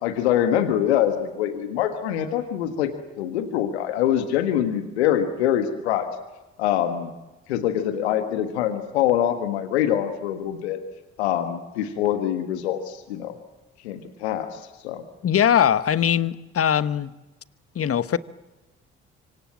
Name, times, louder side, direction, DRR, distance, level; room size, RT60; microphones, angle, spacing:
voice 1, 0.0-6.1 6.6-7.1 7.5-10.8 11.2-13.3 13.8-15.0, left 10 dB, 80° left, 8 dB, 1.6 m, -24 dB
voice 2, 15.2-17.1 17.7-18.2, left 9 dB, 45° left, 15 dB, 1.2 m, -21 dB
26.0 x 25.0 x 7.4 m, 1.1 s
hypercardioid pair, 45°, 32 cm